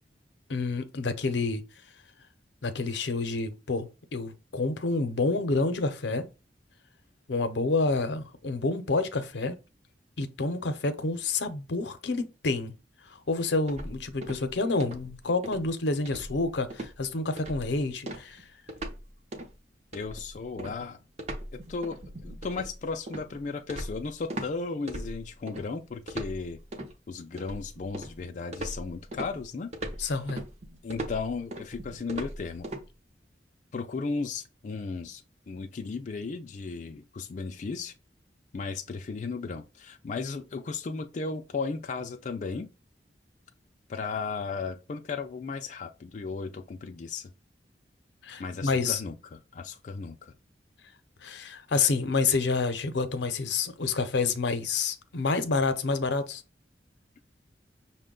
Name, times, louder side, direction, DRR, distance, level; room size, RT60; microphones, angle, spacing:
voice 1, 0.5-1.6 2.6-6.3 7.3-9.6 10.2-12.7 13.1-18.4 30.0-30.4 48.2-49.0 51.2-56.4, left 3 dB, 85° left, 0.6 m, -28 dB
sound 1, 13.7-14.5 14.8-15.1 15.4-15.7 16.1-16.5 16.7-17.0 17.4-17.7 18.1-19.0 19.3-19.5 19.9-24.5 24.9-25.7 26.1-26.9 27.4-28.2 28.5-32.8, right 1 dB, 40° right, 0.7 m, -38 dB
voice 2, 19.9-21.0 21.5-26.6 27.1-29.7 30.8-32.7 33.7-37.9 38.5-42.7 43.9-47.3 48.4-50.3, left 4 dB, 45° left, 0.4 m, -35 dB
6.0 x 2.2 x 3.7 m
head